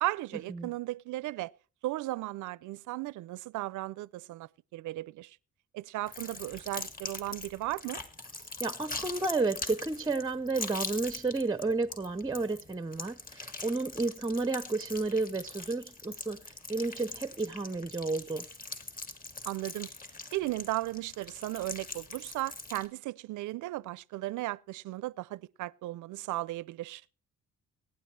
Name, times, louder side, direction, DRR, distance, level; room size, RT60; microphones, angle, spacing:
voice 1, 0.0-1.5 1.8-5.4 5.7-8.0 19.5-19.9 20.3-27.0, right 17 dB, 80° right, 0.5 m, -36 dB
sound 1, 6.1-22.9, left 2 dB, 30° left, 2.1 m, -42 dB
voice 2, 8.6-18.5, right 3 dB, 15° right, 0.6 m, -32 dB
23.5 x 9.9 x 3.2 m
cardioid pair, 90°, 30 cm